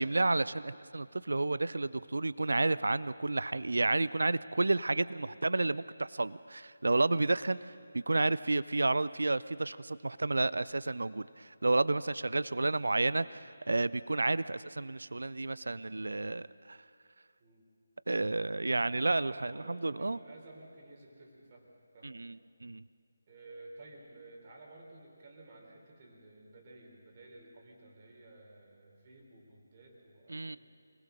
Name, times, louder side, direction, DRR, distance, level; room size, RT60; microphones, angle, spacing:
voice 1, 0.0-16.8 18.1-20.2 22.0-22.8 30.3-30.6, right 2 dB, 60° right, 18 dB, 0.5 m, -31 dB
voice 2, 19.1-21.7 21.9-22.2 23.3-30.6, right 2 dB, 30° right, 0 dB, 3.8 m, -54 dB
25.5 x 19.5 x 6.4 m, 2.3 s
figure-of-eight pair, 155°, 0 cm